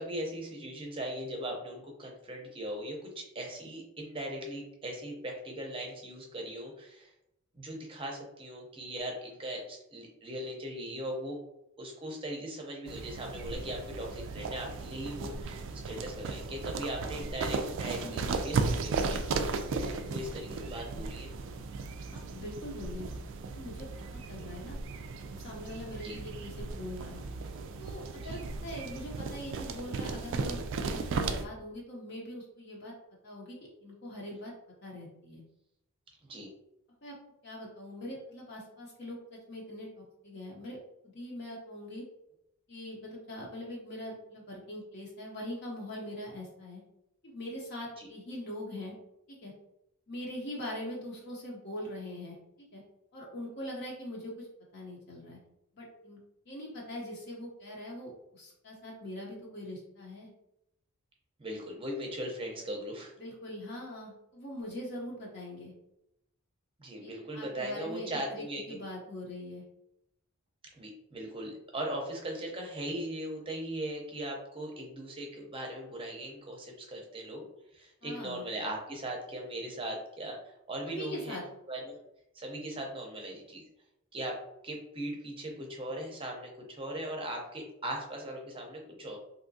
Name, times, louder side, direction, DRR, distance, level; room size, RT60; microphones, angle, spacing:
voice 1, 0.0-7.1 7.5-11.4 11.8-21.3 25.9-26.2 28.2-28.4 36.2-36.5 48.0-48.1 61.4-63.1 66.8-68.6 70.7-77.4 77.7-81.4 81.7-81.9 82.3-83.6 84.1-84.3 84.6-89.2, right 1 dB, 25° right, 0 dB, 0.6 m, -39 dB
sound 1, 12.9-31.5, right 4 dB, 60° right, 0.3 m, -36 dB
voice 2, 18.0-18.4 22.1-23.1 23.5-24.8 25.3-27.2 27.8-32.9 33.2-34.5 34.8-35.4 37.0-37.1 37.4-40.8 41.0-42.0 42.7-46.8 47.2-49.0 49.3-49.5 50.1-52.4 52.7-52.8 53.1-54.5 54.7-55.4 55.7-56.2 56.5-60.3 63.2-65.7 67.0-69.6 78.0-78.4 80.9-81.4, left 1 dB, 50° left, -3 dB, 0.7 m, -42 dB
3.5 x 2.7 x 2.6 m, 0.83 s
head